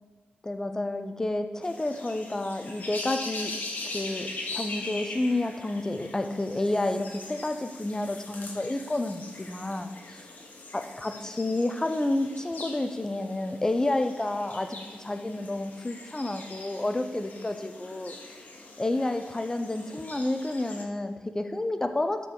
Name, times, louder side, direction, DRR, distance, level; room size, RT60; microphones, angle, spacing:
voice 1, 0.4-3.5 3.8-10.2 11.0-18.4 18.8-22.3, left 2 dB, 20° left, 7 dB, 0.6 m, -30 dB
sound 1, 1.6-20.8, left 2 dB, 60° left, 1.2 m, -41 dB
12.5 x 4.5 x 3.8 m, 1.5 s
wide cardioid pair, 125°, 3 cm